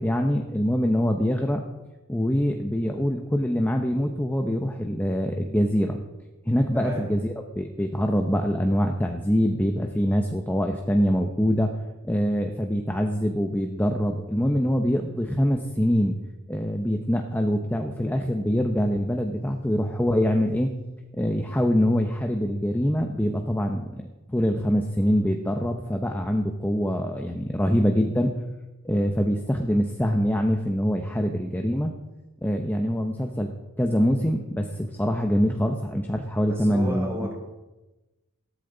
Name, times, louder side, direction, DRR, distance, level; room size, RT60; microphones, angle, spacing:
voice 1, 0.0-1.6 2.1-6.0 6.4-11.7 12.0-16.2 16.5-20.7 21.1-24.0 24.3-28.3 28.8-31.9 32.4-37.3, equal, 10° left, 3 dB, 0.8 m, -24 dB
voice 2, 6.7-7.1 36.5-37.3, equal, 10° right, -3 dB, 5.0 m, -33 dB
16.0 x 13.5 x 3.9 m, 1.1 s
head